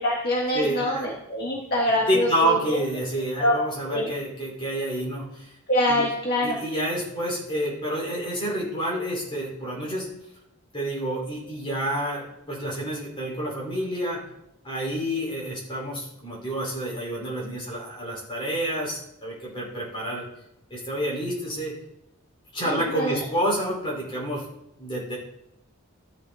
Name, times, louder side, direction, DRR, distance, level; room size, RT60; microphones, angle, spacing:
voice 1, 0.0-2.8 3.4-3.6 3.9-4.1 5.7-6.6 22.7-23.2, left 1 dB, 45° left, -3 dB, 1.8 m, -25 dB
voice 2, 0.5-1.1 1.5-1.6 2.1-5.6 5.9-6.1 6.4-10.1 10.7-14.2 14.6-20.2 20.7-21.7 22.5-24.4 24.8-25.2, right 1 dB, 25° left, -5 dB, 5.3 m, -28 dB
13.5 x 9.7 x 4.3 m, 0.84 s
head